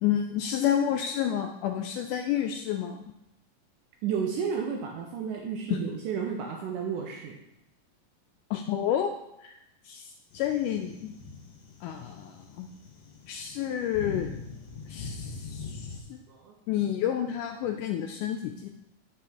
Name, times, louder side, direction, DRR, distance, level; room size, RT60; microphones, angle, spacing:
voice 1, 0.0-3.0 5.7-5.8 8.5-9.1 9.4-9.6 9.9-11.2 11.8-12.7 13.3-14.3 14.9-16.2 16.7-18.7, left 10 dB, 80° left, 4 dB, 1.9 m, -30 dB
voice 2, 4.0-7.4 16.3-16.5, right 7 dB, 75° right, 1 dB, 2.2 m, -32 dB
sound 1, 10.3-16.0, left 4 dB, 60° left, 1.8 m, -42 dB
9.7 x 5.7 x 3.5 m, 0.84 s
omnidirectional pair, 3.9 m